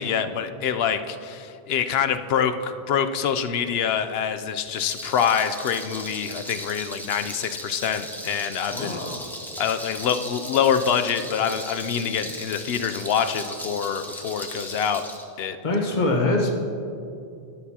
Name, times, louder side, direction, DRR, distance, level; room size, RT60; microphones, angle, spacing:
voice 1, 0.0-9.0 9.6-15.0 15.4-15.6, left 7 dB, 75° left, 9 dB, 0.8 m, -25 dB
Rattle, 4.6-15.2, equal, ahead, 0.9 m, -37 dB
voice 2, 8.7-9.3 15.6-16.5, left 2 dB, 50° left, 0 dB, 1.3 m, -24 dB
12.0 x 10.5 x 2.8 m, 2.6 s
omnidirectional pair, 1.0 m